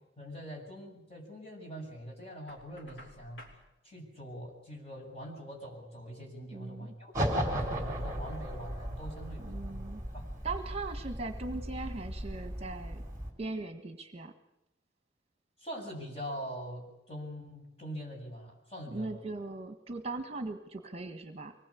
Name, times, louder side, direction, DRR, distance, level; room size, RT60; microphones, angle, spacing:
voice 1, 0.2-3.5 3.8-9.8 10.1-10.3 15.6-19.3, equal, 30° left, 0 dB, 7.5 m, -43 dB
Knock, 2.5-3.6, left 1 dB, 75° left, 5.1 m, -52 dB
voice 2, 6.5-6.9 9.4-10.0 10.4-13.0 13.4-14.3 18.9-21.5, right 3 dB, 30° right, 7 dB, 1.6 m, -39 dB
sound 1, 7.1-13.3, equal, 15° right, 4.2 m, -36 dB
24.5 x 20.0 x 8.5 m, 0.83 s
head